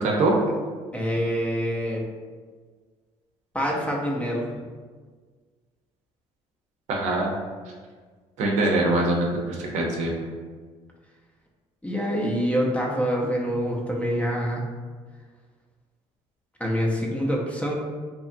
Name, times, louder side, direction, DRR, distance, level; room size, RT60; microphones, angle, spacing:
voice 1, 0.0-0.3 6.9-7.3 8.4-10.3, right 2 dB, 70° right, -1 dB, 0.6 m, -23 dB
voice 2, 0.9-2.0 3.5-4.5 11.8-14.6 16.6-17.7, equal, 10° left, -2 dB, 0.6 m, -26 dB
2.9 x 2.4 x 2.6 m, 1.5 s
supercardioid pair, 80°, 13 cm